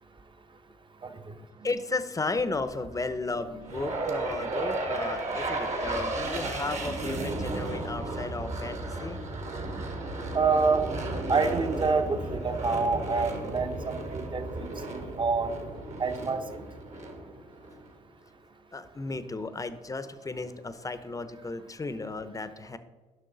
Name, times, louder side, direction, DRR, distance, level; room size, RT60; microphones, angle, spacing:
voice 1, 1.6-9.2 18.7-22.8, left 3 dB, 20° left, 12 dB, 0.8 m, -34 dB
sound 1, 2.7-8.0, right 4 dB, 65° right, 1.6 m, -51 dB
sound 2, 3.7-17.9, right 2 dB, 50° right, 1.6 m, -34 dB
voice 2, 10.3-10.8 11.3-15.5 16.0-16.4, right 4 dB, 30° right, 8 dB, 1.0 m, -27 dB
11.0 x 5.9 x 4.0 m, 1.4 s
supercardioid pair, 60°, 15 cm